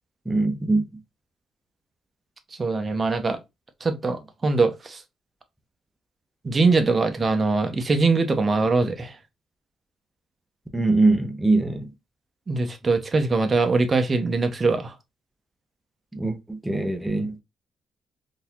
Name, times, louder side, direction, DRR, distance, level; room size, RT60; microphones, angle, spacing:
voice 1, 0.3-0.8 10.7-11.9 16.1-17.4, right 2 dB, 5° right, 0.7 m, -22 dB
voice 2, 2.6-3.4 3.8-5.0 6.4-9.1 12.5-14.9, right 3 dB, 30° right, 0.8 m, -22 dB
3.9 x 2.8 x 2.4 m
cardioid pair, 90°, 0 cm